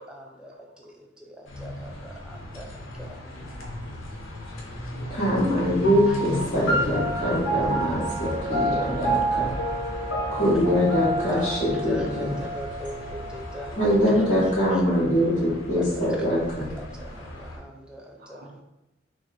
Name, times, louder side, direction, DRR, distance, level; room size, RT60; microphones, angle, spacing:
voice 1, 0.0-2.7 3.0-3.2 6.1-6.2 11.2-13.8 14.2-14.3 15.8-15.9 16.6-18.6, left 1 dB, 5° right, 0 dB, 0.4 m, -39 dB
sound 1, 1.4-17.6, left 1 dB, 80° left, 0.7 m, -37 dB
voice 2, 3.4-5.7 10.2-10.9 11.4-12.2 13.7-13.9 18.2-18.6, right 2 dB, 45° right, -1 dB, 0.6 m, -44 dB
voice 3, 5.1-9.5 10.3-12.4 13.8-16.7, equal, 40° left, -12 dB, 1.0 m, -23 dB
sound 2, 5.8-14.7, right 1 dB, 65° left, 1.1 m, -29 dB
3.0 x 2.1 x 3.9 m, 0.91 s
head